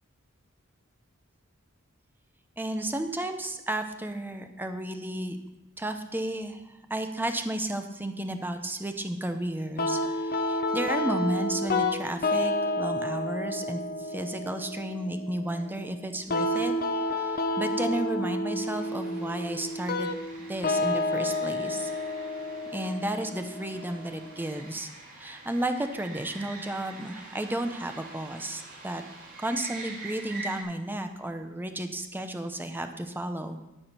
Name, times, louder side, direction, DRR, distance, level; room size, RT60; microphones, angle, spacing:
voice 1, 2.6-5.4 5.8-16.7 17.1-20.1 20.5-21.9 22.7-24.9 25.2-29.0 29.4-33.6, right 1 dB, 10° right, 7 dB, 0.7 m, -33 dB
sound 1, 9.8-24.7, left 2 dB, 45° left, 0.7 m, -30 dB
sound 2, 18.6-30.6, right 3 dB, 60° right, 3.7 m, -45 dB
13.0 x 5.0 x 5.8 m, 0.97 s
head